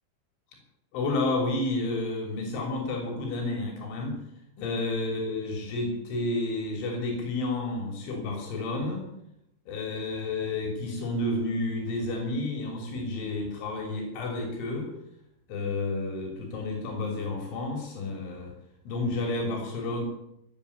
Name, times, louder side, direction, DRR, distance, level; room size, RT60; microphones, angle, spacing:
voice 1, 0.9-4.2 4.6-9.1 9.7-14.9 15.5-18.5 18.9-20.0, left 2 dB, 85° left, 2 dB, 5.7 m, -30 dB
17.5 x 7.8 x 9.9 m, 0.79 s
omnidirectional pair, 5.3 m